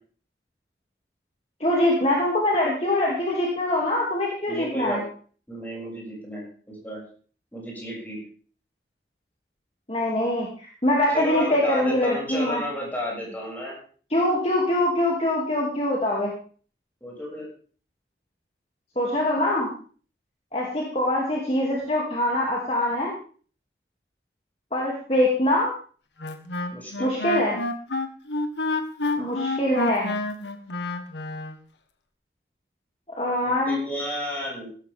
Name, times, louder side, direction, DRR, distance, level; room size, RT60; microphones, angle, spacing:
voice 1, 1.6-5.0 9.9-12.6 14.1-16.3 19.0-19.7 20.5-23.1 24.7-25.7 27.0-27.6 29.2-30.1 33.2-33.8, left 1 dB, 35° left, -3 dB, 2.8 m, -23 dB
voice 2, 4.5-5.0 5.5-7.0 7.5-8.2 11.1-13.7 17.0-17.5 26.7-27.1 33.4-34.7, equal, 10° left, -3 dB, 7.3 m, -33 dB
Wind instrument woodwind instrument, 26.2-31.6, left 2 dB, 85° left, 1.7 m, -29 dB
16.0 x 14.0 x 3.7 m, 0.42 s
head